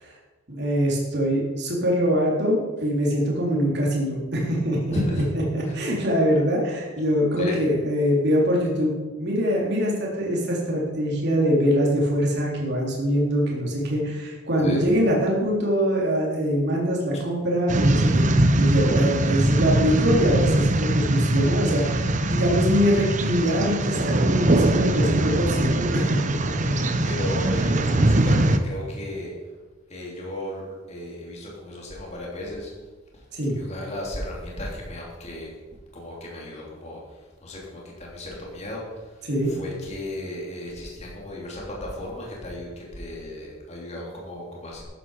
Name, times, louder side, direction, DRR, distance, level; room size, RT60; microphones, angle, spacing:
voice 1, 0.5-5.0 5.3-8.9 9.2-26.3 26.7-26.8 33.3-33.6 39.2-39.5, equal, 55° right, -2 dB, 3.5 m, -23 dB
voice 2, 4.9-5.2 7.4-7.5 14.6-14.8 26.6-29.3 29.9-32.7 33.1-33.2 33.5-35.5 35.9-37.0 37.4-44.8, left 1 dB, 35° left, -3 dB, 3.3 m, -35 dB
sound 1, 17.7-28.6, right 1 dB, 40° right, 0.9 m, -22 dB
14.0 x 10.5 x 5.0 m, 1.3 s
head